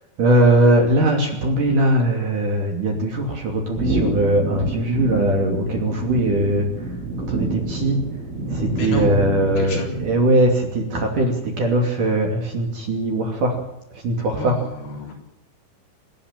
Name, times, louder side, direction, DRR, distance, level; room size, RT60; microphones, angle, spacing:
voice 1, 0.2-6.9 7.2-8.0 8.5-13.6 13.9-14.6, right 1 dB, 45° right, 2 dB, 3.8 m, -20 dB
sound 1, 3.7-10.5, right 2 dB, 80° right, 8.5 m, -27 dB
voice 2, 8.7-9.1 9.6-9.9 14.3-15.1, left 2 dB, 55° left, 0 dB, 5.6 m, -31 dB
28.0 x 10.0 x 9.1 m, 0.82 s
omnidirectional pair, 5.6 m